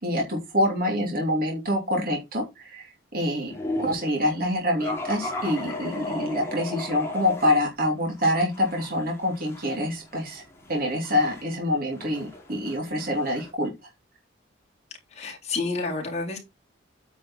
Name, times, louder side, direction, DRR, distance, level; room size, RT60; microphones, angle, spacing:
voice 1, 0.0-2.9 3.1-3.5 3.8-10.4 10.7-13.7, left 1 dB, 50° right, 2.9 m, -26 dB
sound 1, 3.5-4.1 4.8-7.6 8.0-13.5, left 2 dB, 15° left, 3.1 m, -36 dB
voice 2, 15.1-16.4, left 3 dB, 35° left, 3.8 m, -29 dB
9.2 x 6.1 x 4.3 m
head